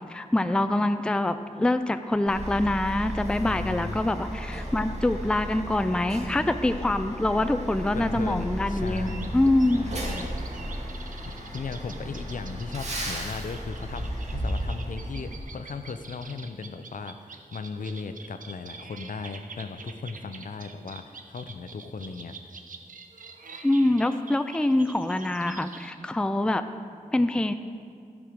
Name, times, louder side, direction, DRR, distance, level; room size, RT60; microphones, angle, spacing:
voice 1, 0.1-9.8 23.6-26.6 27.1-27.5, left 1 dB, 5° left, 10 dB, 0.4 m, -25 dB
Truck, 2.3-15.4, equal, 50° right, 2.1 m, -34 dB
voice 2, 3.4-4.1 7.9-9.4 9.7-10.6 11.4-22.4, left 4 dB, 70° left, 9 dB, 0.6 m, -37 dB
sound 1, 8.7-25.9, right 4 dB, 70° right, 0.8 m, -46 dB
14.5 x 6.2 x 5.1 m, 2.2 s
wide cardioid pair, 100°, 14 cm